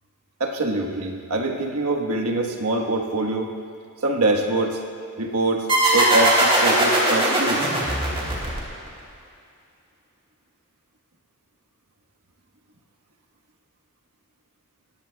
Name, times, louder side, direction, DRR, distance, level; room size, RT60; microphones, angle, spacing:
voice 1, 0.4-3.5 4.0-4.8 5.2-5.7 5.9-7.7, right 2 dB, 75° right, 3 dB, 1.3 m, -24 dB
sound 1, 5.7-9.0, right 1 dB, 25° right, 3.1 m, -19 dB
20.5 x 16.0 x 2.3 m, 2.4 s
head